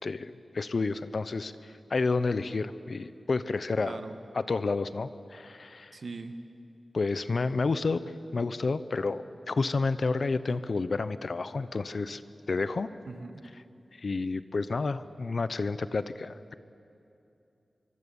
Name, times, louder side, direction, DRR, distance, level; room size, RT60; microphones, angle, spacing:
voice 1, 0.0-4.0 4.3-6.0 6.9-8.0 8.3-12.2 12.5-12.9 14.0-16.5, left 3 dB, 60° left, 13 dB, 0.8 m, -30 dB
voice 2, 5.9-6.3 13.1-13.3, right 3 dB, 60° right, 7 dB, 1.5 m, -40 dB
25.0 x 24.0 x 7.1 m, 2.7 s
wide cardioid pair, 100°, 0 cm